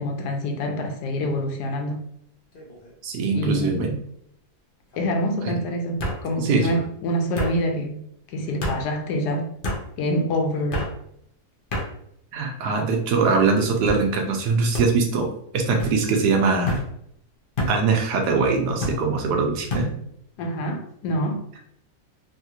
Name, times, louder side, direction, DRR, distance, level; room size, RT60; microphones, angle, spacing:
voice 1, 0.0-2.0 3.3-3.9 5.0-8.0 8.3-9.5 10.0-10.9 20.4-21.4, equal, 90° left, 1.2 m, -26 dB
sound 1, 2.5-2.9 3.3-3.9 4.9-5.0 6.0-6.2 7.4-7.6 8.6-8.8 9.6-9.8 10.7-10.9 11.7-11.9 12.6-13.1 13.9-14.0 14.7-14.9 15.8-16.0 16.7-16.9 17.6-17.8 18.8-19.0 19.7-19.9, left 1 dB, 55° left, 0.6 m, -28 dB
voice 2, 3.0-4.0 5.5-5.6 6.4-6.7 12.3-16.8 17.7-19.9, right 4 dB, 85° right, 1.2 m, -22 dB
3.4 x 2.4 x 2.8 m
omnidirectional pair, 1.7 m